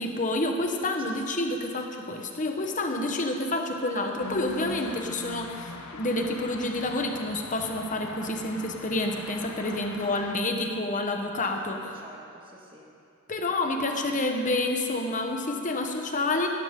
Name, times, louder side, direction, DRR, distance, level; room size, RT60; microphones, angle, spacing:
voice 1, 0.0-11.8 13.3-16.5, left 2 dB, 35° left, 3 dB, 1.2 m, -29 dB
sound 1, 4.2-10.4, left 3 dB, 75° left, 0.9 m, -41 dB
voice 2, 10.0-10.6 11.5-12.9 13.5-14.1, right 2 dB, 25° right, -2 dB, 1.8 m, -49 dB
17.5 x 13.0 x 3.8 m, 2.4 s
head